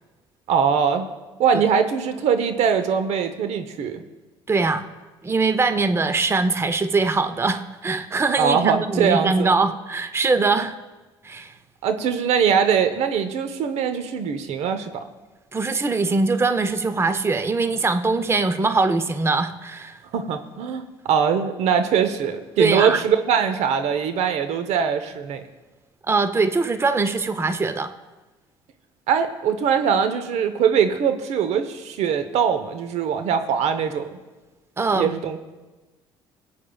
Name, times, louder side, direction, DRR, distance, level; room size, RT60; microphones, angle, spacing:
voice 1, 0.5-1.1 1.4-4.0 8.4-9.5 10.4-10.6 11.8-15.0 20.1-25.4 29.1-34.1 34.9-35.4, right 7 dB, 65° right, 9 dB, 1.0 m, -22 dB
voice 2, 4.5-4.9 5.2-10.8 11.2-11.5 15.5-20.0 22.6-23.0 26.1-27.9 34.8-35.1, right 3 dB, 20° right, 10 dB, 0.7 m, -22 dB
22.5 x 8.5 x 2.4 m, 1.2 s
hypercardioid pair, 65°, 12 cm